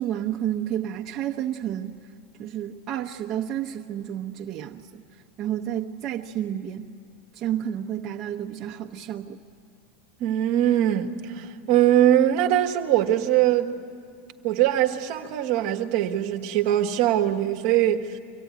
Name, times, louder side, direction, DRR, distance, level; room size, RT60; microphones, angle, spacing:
voice 1, 0.0-1.9 2.4-5.0 5.4-6.9 7.3-9.4, right 10 dB, 40° right, 1.0 m, -30 dB
voice 2, 10.2-13.8 14.4-18.2, right 12 dB, 60° right, 1.3 m, -22 dB
24.5 x 14.5 x 9.4 m
hypercardioid pair, 90°, 0 cm